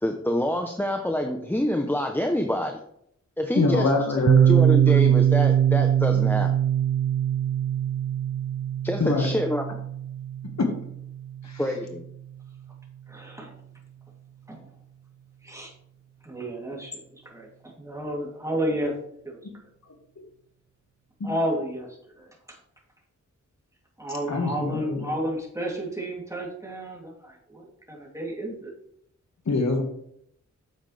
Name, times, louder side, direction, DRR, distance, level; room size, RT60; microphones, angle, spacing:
voice 1, 0.0-2.8 3.4-3.9 4.2-6.5 8.8-9.6 11.6-12.0, left 1 dB, 5° left, 4 dB, 0.8 m, -26 dB
voice 2, 3.5-4.5 9.0-9.3 11.4-11.6 21.2-21.3 24.3-25.1 29.5-29.8, left 3 dB, 65° left, 3 dB, 1.8 m, -24 dB
Piano, 4.3-11.7, right 10 dB, 50° right, 0.5 m, -22 dB
voice 3, 13.1-13.6 14.5-14.7 15.4-15.7 16.2-19.0 19.2-19.4 21.2-21.9 22.2-22.6 24.0-28.7, right 1 dB, 10° right, -3 dB, 2.9 m, -32 dB
9.1 x 7.3 x 3.3 m, 0.71 s
wide cardioid pair, 95°, 30 cm